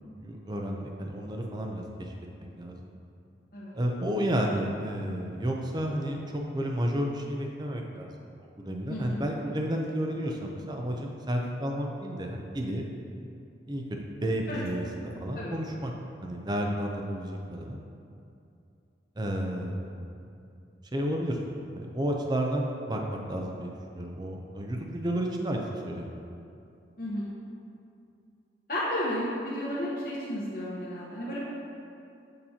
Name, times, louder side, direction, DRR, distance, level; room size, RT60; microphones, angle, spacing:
voice 1, 0.2-2.1 2.6-2.9 3.7-8.1 8.6-12.8 13.7-15.9 16.2-17.8 19.2-20.0 20.9-21.4 21.7-26.2, equal, 25° right, 1 dB, 0.5 m, -31 dB
voice 2, 8.9-9.2 14.5-14.6 15.3-15.5 27.0-27.3 28.7-31.4, left 1 dB, 50° left, -9 dB, 1.0 m, -32 dB
7.2 x 6.7 x 2.8 m, 2.6 s
head